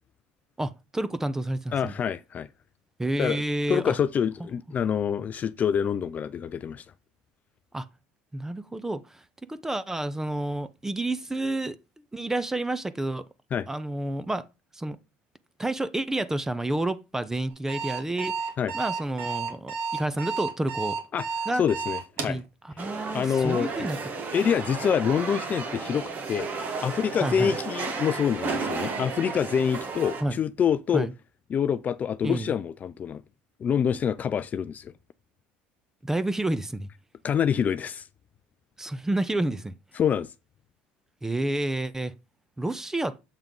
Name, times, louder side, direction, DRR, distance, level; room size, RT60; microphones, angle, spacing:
voice 1, 0.6-1.9 3.0-3.9 7.7-7.9 8.3-9.2 9.5-11.8 12.1-13.2 13.7-14.5 14.7-15.0 15.6-18.3 18.7-21.0 21.5-21.6 22.2-22.4 22.8-24.0 27.2-27.5 30.2-30.4 30.9-31.1 32.2-32.5 36.0-36.9 38.8-39.7 41.2-42.1 42.6-43.2, right 1 dB, 10° right, 0.6 m, -29 dB
voice 2, 1.7-2.5 3.2-3.4 3.7-6.8 13.5-13.7 18.6-18.7 21.1-21.3 21.5-22.4 22.8-23.9 24.3-26.5 26.8-31.1 31.5-33.2 33.6-34.9 37.2-38.1 39.9-40.3, left 8 dB, 35° left, 0.4 m, -26 dB
Alarm, 17.5-22.4, right 5 dB, 60° right, 2.1 m, -31 dB
sound 1, 22.8-30.2, right 4 dB, 40° right, 1.5 m, -33 dB
7.4 x 3.6 x 5.2 m
supercardioid pair, 110°, 5 cm